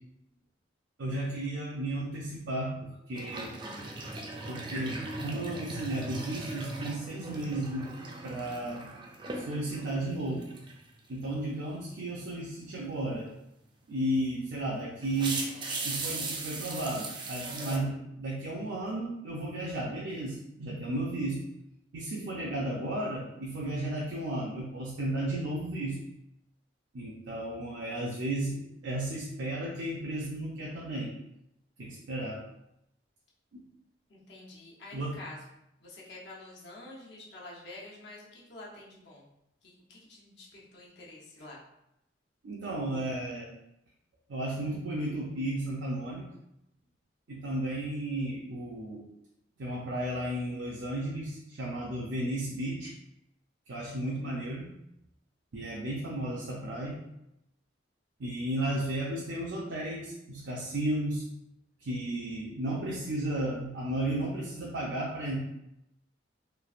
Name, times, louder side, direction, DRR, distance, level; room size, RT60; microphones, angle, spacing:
voice 1, 1.0-3.5 4.5-7.9 8.2-8.9 9.3-10.5 11.1-13.3 13.9-15.5 15.8-21.4 21.9-26.0 26.9-31.1 31.8-32.4 33.5-33.6 34.9-35.1 42.4-43.5 44.3-46.3 47.3-49.0 49.6-52.9 53.7-54.8 55.5-57.0 58.2-61.3 61.8-65.4, right 1 dB, 90° right, -3 dB, 0.5 m, -34 dB
sound 1, 3.2-10.1 10.4-10.8 14.2-14.3 15.0-17.8, right 2 dB, 25° right, 0.3 m, -38 dB
voice 2, 34.1-39.3 39.6-41.6, left 2 dB, 70° left, -5 dB, 0.8 m, -48 dB
3.1 x 2.4 x 2.4 m, 0.83 s
head